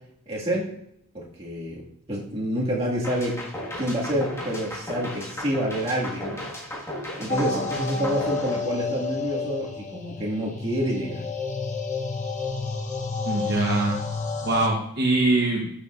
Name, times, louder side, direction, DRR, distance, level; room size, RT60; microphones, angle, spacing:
voice 1, 0.3-0.7 1.1-1.8 2.1-3.4 3.8-6.4 7.2-11.2, equal, 25° right, -4 dB, 1.9 m, -27 dB
sound 1, 3.0-9.2, left 1 dB, 10° left, 1.6 m, -35 dB
sound 2, 7.3-14.7, left 4 dB, 35° left, 0.8 m, -31 dB
voice 2, 13.2-14.0 14.4-15.7, right 2 dB, 45° right, -2 dB, 1.0 m, -23 dB
12.5 x 6.6 x 2.5 m, 0.74 s
head